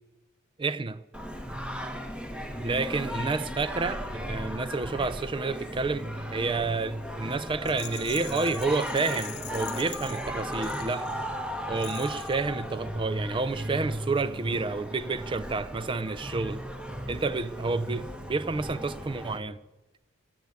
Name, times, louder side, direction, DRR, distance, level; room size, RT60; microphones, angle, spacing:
voice 1, 0.6-1.0 2.6-11.1 11.7-16.6 17.1-19.6, right 3 dB, 25° right, 0.4 m, -30 dB
Singing, 1.1-19.4, equal, 5° right, 1.1 m, -36 dB
Rattle, 7.6-11.3 11.8-12.5, left 15 dB, 55° left, 0.6 m, -44 dB
15.5 x 8.0 x 8.0 m
head